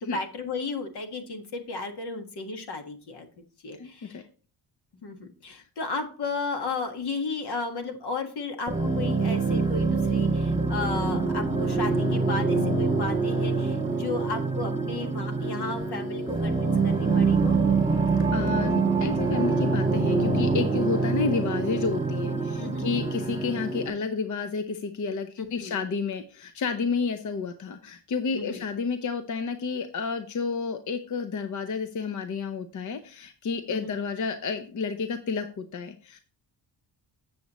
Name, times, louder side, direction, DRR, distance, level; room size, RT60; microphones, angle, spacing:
voice 1, 0.0-3.3 3.6-4.2 5.0-17.6 22.6-23.1 25.4-25.7 28.3-28.6 33.7-34.0, left 3 dB, 65° left, 5 dB, 1.6 m, -34 dB
voice 2, 3.8-4.2 5.5-5.6 18.3-36.2, left 5 dB, 45° left, 8 dB, 0.7 m, -30 dB
sound 1, 8.7-23.9, right 4 dB, 10° right, 1.5 m, -25 dB
7.7 x 7.2 x 3.0 m, 0.39 s
cardioid pair, 110°, 42 cm